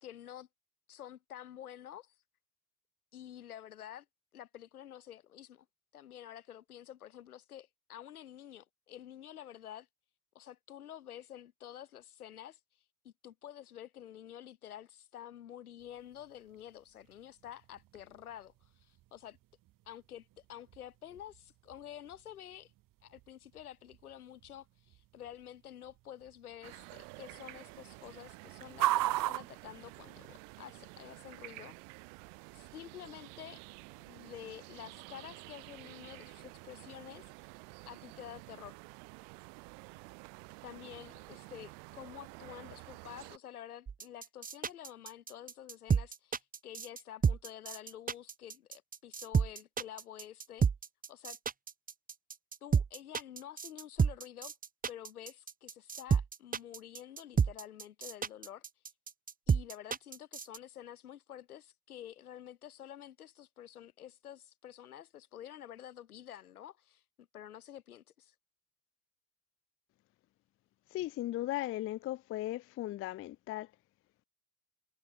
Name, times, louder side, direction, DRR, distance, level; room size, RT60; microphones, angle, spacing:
voice 1, 0.0-0.5 0.9-2.1 3.1-4.1 4.3-5.7 5.9-9.9 10.3-12.6 13.0-19.4 19.9-22.7 23.0-31.7 32.5-33.6 34.0-37.3 37.9-38.8 40.6-50.7 51.1-51.4 52.6-54.5 54.9-58.6 59.5-68.3, left 11 dB, 85° left, 2.3 m, -49 dB
sound 1, 15.8-30.6, right 16 dB, 50° right, 1.5 m, -42 dB
sound 2, 26.6-43.4, right 37 dB, 65° right, 6.3 m, -51 dB
sound 3, 43.9-60.6, right 6 dB, 20° right, 1.0 m, -30 dB
voice 2, 70.9-73.7, left 15 dB, 30° left, 0.4 m, -37 dB
hypercardioid pair, 70°, 43 cm